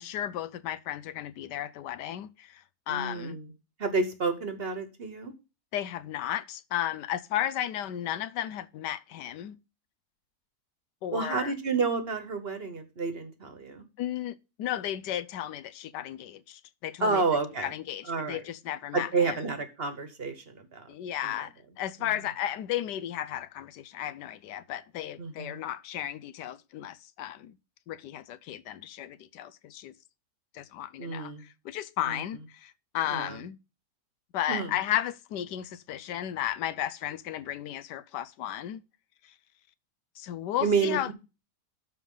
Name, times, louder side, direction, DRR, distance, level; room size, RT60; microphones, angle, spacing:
voice 1, 0.0-3.4 5.7-9.6 11.0-11.5 14.0-17.2 17.6-19.4 20.9-27.6 27.9-29.9 30.5-31.3 31.6-33.6 34.3-38.8 39.2-39.3 40.2-41.1, left 12 dB, 90° left, 1.3 m, -34 dB
voice 2, 2.9-3.5 3.8-5.3 11.1-13.8 17.0-17.7 18.1-18.4 18.9-20.9 21.2-21.3 25.2-25.6 31.0-31.4 32.1-32.2 33.1-33.4 34.5-34.7 40.6-41.1, right 4 dB, 40° right, 1.3 m, -30 dB
12.5 x 4.7 x 3.8 m
omnidirectional pair, 1.7 m